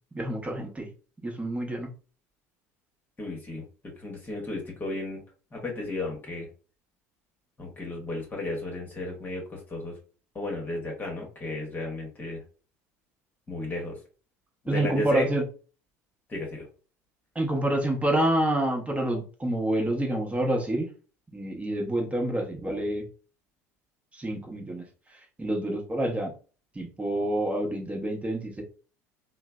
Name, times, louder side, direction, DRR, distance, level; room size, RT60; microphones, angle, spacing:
voice 1, 0.1-0.9 1.2-1.9 14.7-15.4 17.3-20.9 21.3-23.1 24.1-24.8 25.1-26.3 26.7-28.6, right 1 dB, 15° right, 2 dB, 0.9 m, -28 dB
voice 2, 3.2-3.6 4.0-5.2 5.5-6.5 7.6-10.0 10.3-12.4 13.5-14.0 14.6-15.3 16.3-16.6, left 2 dB, 25° left, 0 dB, 1.1 m, -34 dB
3.1 x 2.0 x 2.4 m, 0.37 s
hypercardioid pair, 70°, 8 cm